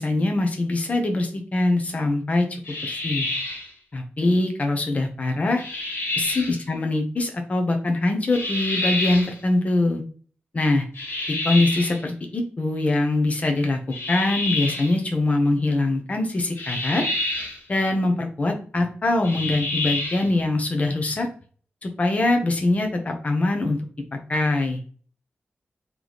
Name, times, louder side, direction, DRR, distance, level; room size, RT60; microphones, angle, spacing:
voice 1, 0.0-3.3 3.9-5.6 6.2-10.0 10.5-10.9 11.3-13.8 14.1-17.0 17.7-21.3 21.8-23.8 24.3-24.8, left 2 dB, 35° left, 4 dB, 0.8 m, -23 dB
sound 1, 2.6-3.7 5.6-6.6 8.3-9.3 10.9-12.0 13.9-14.9 16.6-17.6 19.2-20.3, left 2 dB, 60° left, 1.4 m, -28 dB
3.4 x 3.0 x 4.0 m, 0.42 s
wide cardioid pair, 155°, 4 cm